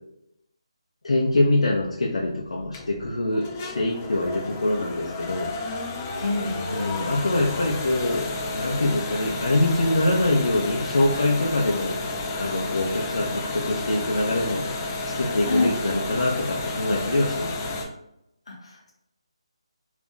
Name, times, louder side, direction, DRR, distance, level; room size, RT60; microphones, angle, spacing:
voice 1, 1.0-5.5 6.7-12.0 12.4-14.8 15.1-17.6, left 2 dB, 90° left, -3 dB, 0.5 m, -24 dB
sound 1, 1.3-17.8, left 2 dB, 20° left, 0.3 m, -32 dB
voice 2, 6.2-6.7 15.4-15.7 18.5-18.9, left 2 dB, 70° left, 0 dB, 0.9 m, -26 dB
2.4 x 2.1 x 3.7 m, 0.82 s
hypercardioid pair, 175°, 3 cm